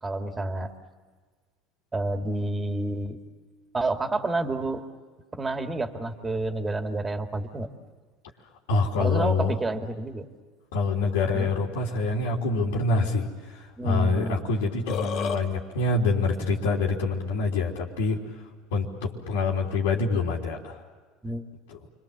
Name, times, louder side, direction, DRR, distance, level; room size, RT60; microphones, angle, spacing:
voice 1, 0.0-0.7 1.9-3.2 3.7-4.9 5.3-7.7 9.0-10.3 11.3-11.5 13.8-14.4 21.2-21.5, right 2 dB, 20° right, 5 dB, 2.4 m, -29 dB
voice 2, 8.7-9.6 10.7-18.2 18.7-20.8 21.7-21.8, left 3 dB, 90° left, -4 dB, 3.4 m, -26 dB
Burping eructation, 14.6-15.4, left 7 dB, 60° left, 2.9 m, -30 dB
29.5 x 23.5 x 7.5 m, 1.5 s
supercardioid pair, 100°, 0 cm